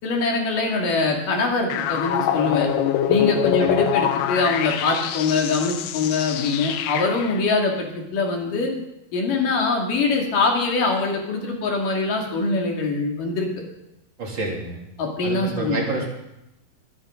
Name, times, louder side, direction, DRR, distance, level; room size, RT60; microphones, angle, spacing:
voice 1, 0.0-2.7 3.1-8.7 9.1-13.5 15.0-15.8, left 3 dB, 60° left, 0 dB, 4.0 m, -23 dB
sound 1, 1.7-7.4, left 10 dB, 85° left, 2.9 m, -24 dB
voice 2, 14.2-14.8 15.2-16.1, right 3 dB, 30° right, -2 dB, 3.3 m, -28 dB
22.5 x 10.5 x 3.9 m, 0.87 s
omnidirectional pair, 4.5 m